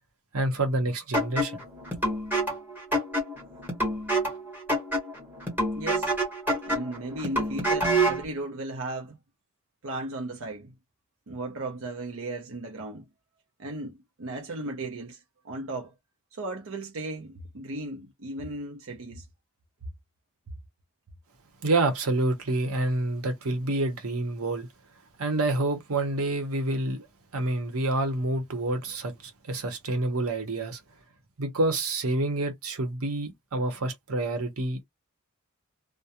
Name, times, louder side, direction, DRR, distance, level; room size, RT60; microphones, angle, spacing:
voice 1, 0.3-1.6 21.6-24.7 25.2-27.1 27.3-30.8 31.4-34.8, right 2 dB, 90° right, 0.9 m, -28 dB
sound 1, 1.1-8.3, right 1 dB, 10° right, 1.2 m, -27 dB
voice 2, 5.8-6.1 6.5-9.2 9.8-10.7 11.3-13.1 13.6-15.9 16.3-19.3, right 2 dB, 65° right, 0.6 m, -36 dB
2.3 x 2.1 x 2.8 m
head